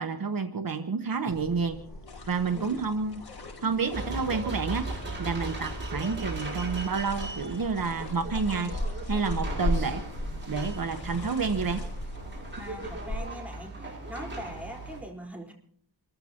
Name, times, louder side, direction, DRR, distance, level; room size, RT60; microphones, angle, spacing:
voice 1, 0.0-1.8 2.3-3.2 3.6-4.9 5.2-8.7 9.1-10.0 10.5-11.8, right 5 dB, 60° right, 7 dB, 1.2 m, -29 dB
sound 1, 1.3-13.2, left 1 dB, 65° left, 7.8 m, -37 dB
sound 2, 2.1-13.2, left 4 dB, 80° left, 5.7 m, -50 dB
voice 2, 2.5-2.8 12.6-15.5, equal, 5° right, -1 dB, 4.4 m, -42 dB
sound 3, 3.9-15.0, right 2 dB, 30° right, 7.0 m, -38 dB
28.0 x 15.0 x 3.0 m, 0.62 s
wide cardioid pair, 85°, 39 cm